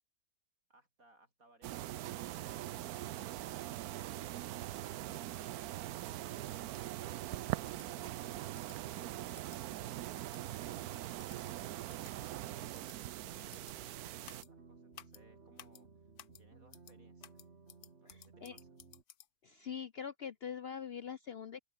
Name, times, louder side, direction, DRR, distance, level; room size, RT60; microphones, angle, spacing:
voice 1, 0.7-4.1 7.0-16.1 16.4-17.4 18.0-18.7, right 2 dB, 65° right, 7.5 m, -67 dB
sound 1, 1.6-14.4, right 14 dB, 80° right, 1.1 m, -42 dB
sound 2, 7.7-7.9 8.5-8.8 9.4-9.6 10.2-10.4 11.2-11.4 11.9-12.1 12.7-13.0 13.5-13.7 14.2-14.5 14.9-15.2 15.6-15.8 16.2-16.4 16.7-16.9 17.2-19.3, left 10 dB, 85° left, 1.4 m, -56 dB
sound 3, 13.2-19.0, right 4 dB, 45° right, 2.3 m, -59 dB
voice 2, 18.0-18.6 19.4-21.6, left 7 dB, 55° left, 0.7 m, -43 dB
open air
omnidirectional pair, 1.6 m